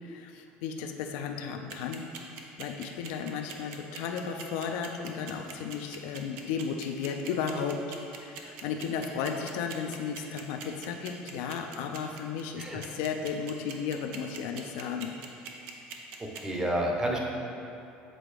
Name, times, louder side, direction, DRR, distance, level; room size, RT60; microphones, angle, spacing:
voice 1, 0.0-2.0 2.6-7.8 8.2-15.1, left 6 dB, 80° left, 4 dB, 0.4 m, -34 dB
sound 1, 1.7-16.4, right 7 dB, 80° right, 0.6 m, -42 dB
voice 2, 16.2-17.2, right 1 dB, 20° right, -1 dB, 0.9 m, -30 dB
7.5 x 3.9 x 3.4 m, 2.7 s
supercardioid pair, 110°, 4 cm